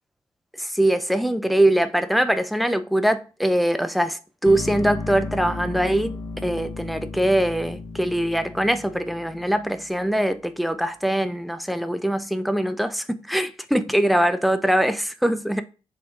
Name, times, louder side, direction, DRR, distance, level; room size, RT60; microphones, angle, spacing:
voice 1, 0.6-6.2 6.4-15.6, right 1 dB, ahead, 0.5 m, -22 dB
sound 1, 4.4-10.5, left 3 dB, 40° left, 0.7 m, -35 dB
3.5 x 2.5 x 4.6 m
hypercardioid pair, 40°, 13 cm